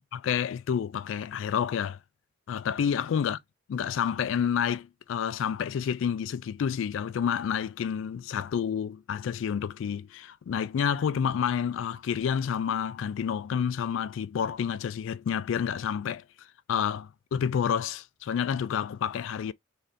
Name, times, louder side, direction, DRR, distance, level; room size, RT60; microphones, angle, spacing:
voice 1, 0.0-2.0 2.5-3.4 3.7-16.2 16.7-19.5, left 8 dB, 80° left, 0.3 m, -29 dB
3.2 x 2.7 x 3.7 m
head